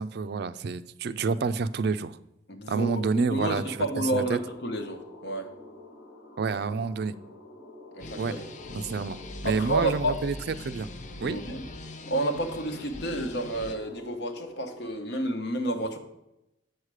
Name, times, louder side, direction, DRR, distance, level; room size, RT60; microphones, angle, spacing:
voice 1, 0.0-2.2 2.7-3.9 4.1-4.4 6.4-7.2 8.2-8.4 8.7-10.9 11.2-11.4, right 4 dB, 65° right, 13 dB, 0.4 m, -29 dB
voice 2, 2.5-5.5 7.9-8.2 9.4-10.2 11.2-11.6 12.1-16.0, right 1 dB, 70° left, 5 dB, 1.2 m, -30 dB
sound 1, 3.7-14.9, left 1 dB, 85° left, 2.1 m, -48 dB
sound 2, 8.0-13.7, left 2 dB, 45° left, 0.6 m, -41 dB
7.9 x 6.6 x 4.8 m, 0.89 s
head